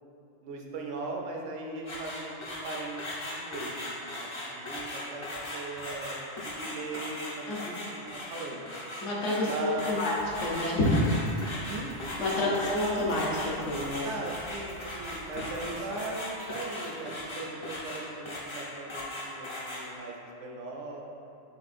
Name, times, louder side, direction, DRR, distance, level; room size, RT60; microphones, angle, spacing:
voice 1, 0.4-5.2 5.5-7.5 7.9-8.7 9.4-10.2 11.7-11.9 12.4-12.6 14.0-20.1 20.4-21.0, right 2 dB, 75° right, 0 dB, 0.9 m, -39 dB
sound 1, 1.8-19.8, left 1 dB, 35° left, 0.5 m, -38 dB
voice 2, 9.0-10.1 10.4-11.0 12.2-14.1, left 1 dB, 70° left, -5 dB, 1.1 m, -29 dB
sound 2, 10.2-17.0, right 1 dB, 50° right, 0.7 m, -49 dB
5.9 x 3.1 x 2.5 m, 2.8 s
omnidirectional pair, 1.3 m